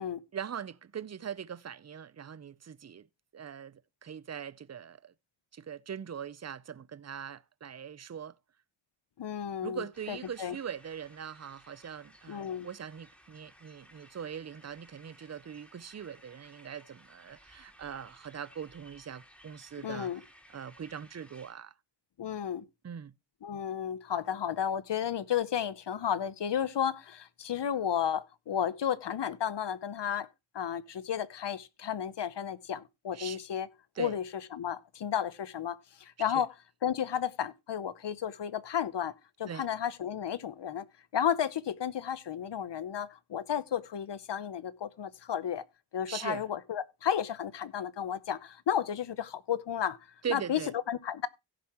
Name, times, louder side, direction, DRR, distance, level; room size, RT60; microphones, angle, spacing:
voice 1, 0.3-3.1 3.3-5.1 5.5-8.4 9.6-20.1 20.5-21.7 22.8-23.1 33.1-33.4 34.0-34.2 36.3-36.4 39.5-39.7 46.1-46.4 50.2-50.7, right 8 dB, 35° right, 0.6 m, -41 dB
voice 2, 9.2-10.6 12.3-12.7 19.8-20.2 22.2-22.6 23.4-30.3 30.5-33.7 34.0-34.2 34.5-36.5 36.8-39.1 39.4-40.8 41.1-45.6 45.9-50.0 50.3-50.6 50.9-51.3, left 9 dB, 65° left, 0.8 m, -33 dB
sound 1, 9.9-21.5, equal, ahead, 3.2 m, -59 dB
16.5 x 7.0 x 2.9 m
wide cardioid pair, 125°, 45 cm